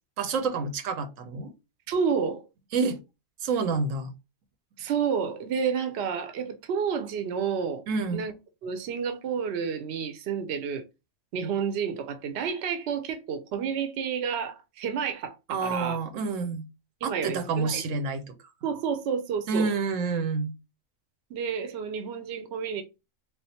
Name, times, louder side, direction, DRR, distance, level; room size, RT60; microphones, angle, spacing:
voice 1, 0.2-1.5 2.7-3.0 3.4-4.1 7.9-8.2 15.5-16.7 17.0-18.4 19.5-20.5, right 4 dB, 85° right, 1.1 m, -28 dB
voice 2, 1.9-2.4 4.8-7.8 8.1-8.3 8.6-10.8 11.3-16.0 17.0-17.8 18.6-19.7 21.3-22.8, right 6 dB, 65° right, 0.8 m, -30 dB
3.4 x 2.5 x 2.8 m
omnidirectional pair, 1.3 m